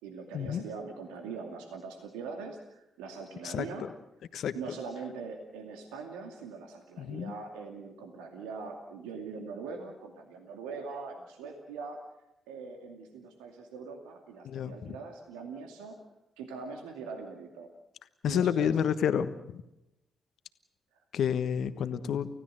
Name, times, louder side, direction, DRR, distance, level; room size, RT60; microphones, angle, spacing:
voice 1, 0.0-3.9 4.5-12.0 12.5-16.0 16.4-17.7 18.3-18.8, right 4 dB, 85° right, 4 dB, 2.4 m, -42 dB
voice 2, 7.0-7.3 14.4-14.9 18.2-19.6 21.1-22.3, left 8 dB, 70° left, 11 dB, 1.3 m, -29 dB
29.5 x 16.0 x 7.8 m, 0.89 s
hypercardioid pair, 45°, 0 cm